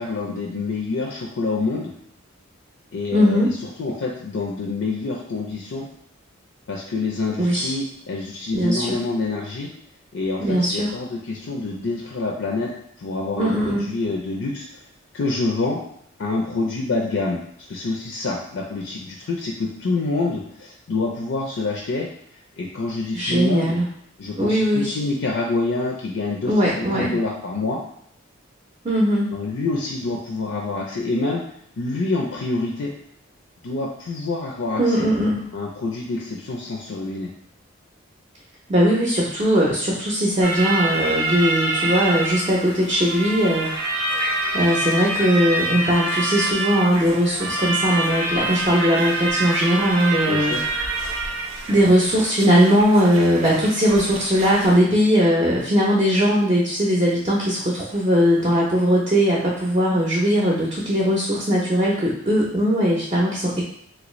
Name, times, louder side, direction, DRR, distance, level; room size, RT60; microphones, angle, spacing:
voice 1, 0.0-1.9 2.9-3.4 3.8-5.9 6.7-9.7 10.1-12.7 13.0-14.8 15.1-15.8 16.2-17.4 17.7-22.1 22.6-23.8 24.2-27.8 29.3-31.4 31.8-32.9 33.6-35.1 35.5-37.3 50.3-50.6, left 3 dB, 70° left, -1 dB, 0.5 m, -26 dB
voice 2, 3.1-3.5 7.4-7.7 8.5-9.0 10.4-10.9 13.4-13.9 23.1-23.9 24.4-24.9 26.5-27.1 28.8-29.3 34.8-35.5 38.7-43.7 44.5-50.6 51.0-51.2 51.7-63.6, equal, 25° right, -4 dB, 0.5 m, -19 dB
sound 1, 40.4-54.7, right 2 dB, 90° right, 0.6 m, -26 dB
3.2 x 2.5 x 3.0 m, 0.67 s
head